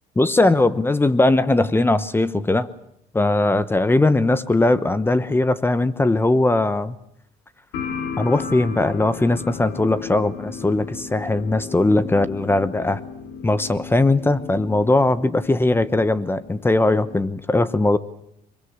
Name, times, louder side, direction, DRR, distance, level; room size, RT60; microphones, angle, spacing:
voice 1, 0.2-2.7 3.1-6.9 8.2-13.0 13.4-18.0, left 2 dB, 15° left, 14 dB, 1.0 m, -19 dB
sound 1, 7.7-17.2, left 6 dB, 85° left, 2.7 m, -35 dB
22.5 x 22.5 x 8.1 m, 0.74 s
cardioid pair, 110°, 17 cm